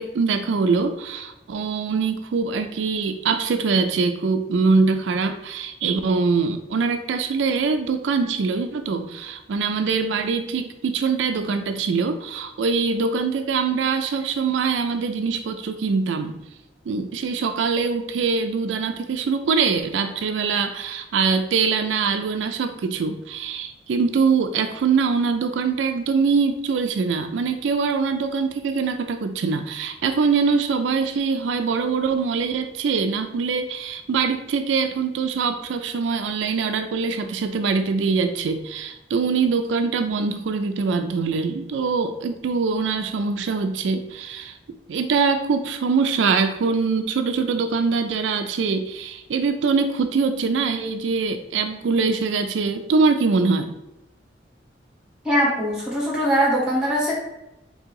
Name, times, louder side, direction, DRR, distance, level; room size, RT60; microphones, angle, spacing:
voice 1, 0.0-16.4 16.9-44.6 44.9-53.7, right 5 dB, 80° right, 7 dB, 0.4 m, -23 dB
voice 2, 55.2-57.1, equal, 5° right, -4 dB, 1.5 m, -21 dB
3.7 x 2.7 x 4.6 m, 0.93 s
head